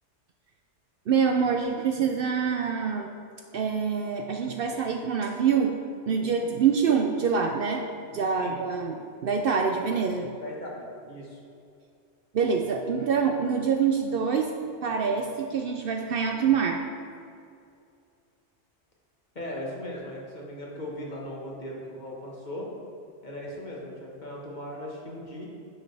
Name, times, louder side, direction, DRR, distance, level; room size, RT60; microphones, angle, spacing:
voice 1, 1.1-3.1 3.5-5.8 6.1-7.9 8.1-10.3 12.3-14.5 14.8-16.8, right 6 dB, 60° right, 4 dB, 0.7 m, -25 dB
voice 2, 10.4-11.4 19.3-22.6 23.2-25.4, left 1 dB, 40° left, -3 dB, 1.5 m, -38 dB
9.8 x 6.7 x 3.3 m, 2.4 s
omnidirectional pair, 1.2 m